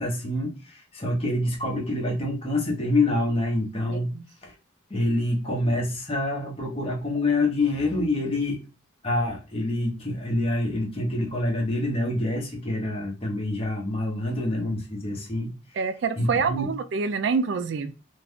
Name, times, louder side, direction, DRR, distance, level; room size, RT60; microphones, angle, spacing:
voice 1, 0.0-4.1 4.4-4.5 4.9-8.6 9.0-15.5 16.2-16.7, left 1 dB, 30° left, -1 dB, 0.9 m, -26 dB
voice 2, 3.9-4.2 15.8-17.9, right 5 dB, 60° right, 10 dB, 0.3 m, -26 dB
2.6 x 2.4 x 3.4 m, 0.30 s
head